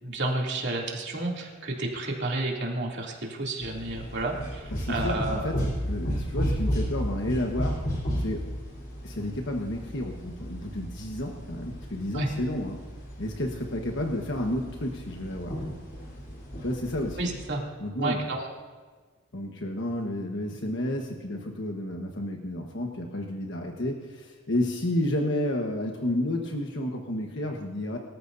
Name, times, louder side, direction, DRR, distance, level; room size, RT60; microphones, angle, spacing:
voice 1, 0.0-5.5 12.1-12.3 17.2-17.6 18.0-18.5, right 2 dB, 60° right, -1 dB, 2.7 m, -31 dB
sound 1, 3.6-17.5, equal, 45° left, 3.7 m, -34 dB
voice 2, 4.7-5.6 5.8-7.8 8.2-8.5 9.0-12.8 13.2-15.6 16.6-17.2 17.8-18.2 19.3-28.0, left 1 dB, 65° left, 1 dB, 1.3 m, -31 dB
25.0 x 14.0 x 2.7 m, 1.4 s
head